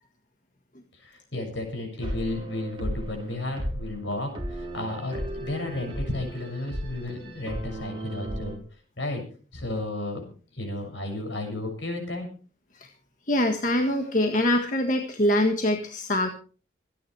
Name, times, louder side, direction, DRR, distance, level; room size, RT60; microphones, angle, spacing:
voice 1, 0.9-8.6 9.0-9.2 9.5-12.3, left 2 dB, 75° left, 3 dB, 7.0 m, -33 dB
sound 1, 2.0-8.6, equal, 25° right, 4.0 m, -35 dB
voice 2, 13.3-16.3, left 1 dB, 45° left, 4 dB, 1.7 m, -24 dB
26.0 x 10.5 x 3.4 m, 0.38 s
head